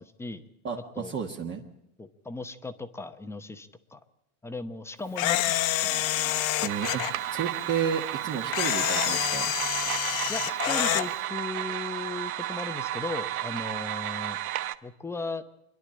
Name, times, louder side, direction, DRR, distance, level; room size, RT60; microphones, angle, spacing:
voice 1, 0.0-0.4 1.0-1.1 2.0-4.0 4.4-6.5 10.3-14.4 14.8-15.4, left 3 dB, 5° left, 9 dB, 0.8 m, -37 dB
voice 2, 0.6-1.6 6.6-7.0 7.3-9.5, right 7 dB, 25° right, 1 dB, 1.5 m, -31 dB
Camera, 5.2-7.1 8.5-11.1, left 13 dB, 75° left, 1.3 m, -27 dB
sound 1, 6.7-14.7, right 13 dB, 80° right, 1.1 m, -33 dB
26.5 x 11.5 x 8.5 m, 0.90 s
supercardioid pair, 145°, 42 cm